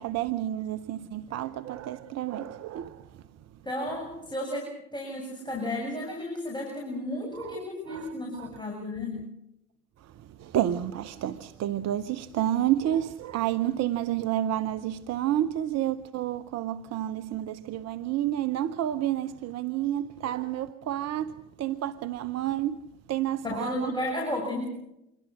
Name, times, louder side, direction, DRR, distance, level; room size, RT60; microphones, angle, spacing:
voice 1, 0.0-3.1 7.3-8.5 10.0-23.9, right 12 dB, 50° right, 0.9 m, -30 dB
voice 2, 3.6-9.2 23.4-24.7, left 1 dB, 15° left, 7.9 m, -33 dB
27.0 x 23.0 x 6.4 m
hypercardioid pair, 55°, 33 cm